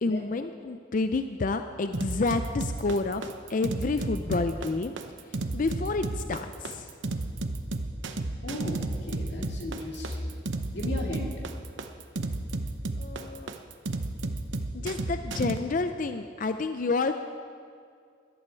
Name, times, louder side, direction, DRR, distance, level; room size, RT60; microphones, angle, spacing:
voice 1, 0.0-4.9 5.5-6.9 13.0-13.5 14.7-17.1, left 3 dB, 45° left, 8 dB, 0.4 m, -29 dB
sound 1, 1.9-15.6, right 2 dB, 80° right, 0.9 m, -32 dB
voice 2, 8.4-10.4 10.7-11.3, left 1 dB, 65° left, 0 dB, 2.2 m, -35 dB
17.5 x 12.0 x 4.5 m, 2.2 s
head